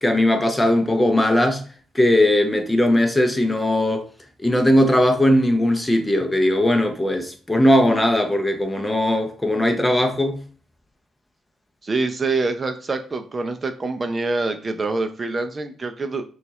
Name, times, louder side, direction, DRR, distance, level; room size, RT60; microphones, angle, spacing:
voice 1, 0.0-1.6 1.9-4.1 4.4-10.4, left 1 dB, 10° left, 0.7 m, -19 dB
voice 2, 11.8-16.2, right 3 dB, 30° right, 0.5 m, -25 dB
5.6 x 2.4 x 3.1 m
cardioid pair, 90°, 0 cm